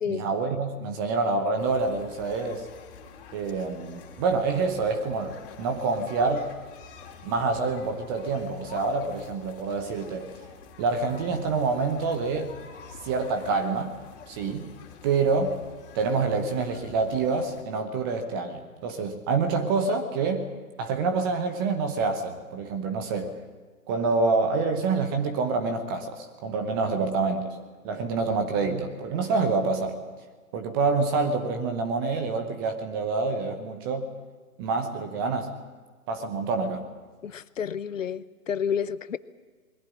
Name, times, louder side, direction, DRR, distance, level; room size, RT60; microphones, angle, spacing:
voice 1, 0.1-2.7 3.3-6.5 7.2-10.3 10.8-12.5 13.0-14.0 14.3-14.7 15.0-15.6 15.9-20.5 20.8-23.3 23.9-27.6 27.8-30.0 30.5-34.1 34.6-35.6 36.1-36.9, right 4 dB, 15° right, 7 dB, 0.9 m, -27 dB
sound 1, 1.6-17.6, left 6 dB, 35° left, 3.2 m, -48 dB
voice 2, 37.2-39.2, left 7 dB, 60° left, 16 dB, 0.9 m, -30 dB
21.5 x 15.5 x 9.6 m, 1.4 s
figure-of-eight pair, 140°, 44 cm